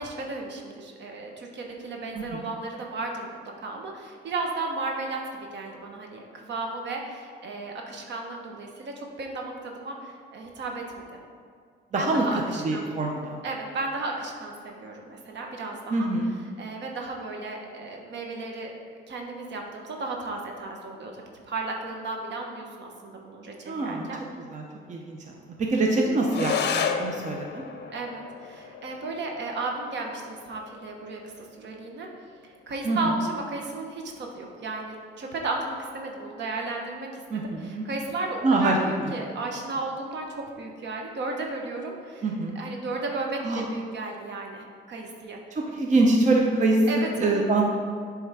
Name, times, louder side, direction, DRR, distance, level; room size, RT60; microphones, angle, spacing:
voice 1, 0.0-5.2 5.5-11.0 11.9-12.8 13.4-16.1 16.6-18.7 19.1-24.2 27.9-32.1 32.4-42.3 42.5-45.4 46.9-47.4, right 3 dB, 65° right, 1 dB, 1.1 m, -34 dB
voice 2, 11.9-12.2 12.6-13.4 15.9-16.3 23.7-24.1 24.5-24.6 24.9-25.2 25.6-27.6 32.8-33.0 37.3-37.8 38.4-38.7 42.2-42.6 43.4-43.7 45.6-46.8 47.2-47.7, right 2 dB, 35° right, 0 dB, 0.8 m, -24 dB
sound 1, 26.3-35.3, left 7 dB, 60° left, 0.6 m, -35 dB
7.6 x 3.5 x 4.9 m, 2.2 s
cardioid pair, 90°, 20 cm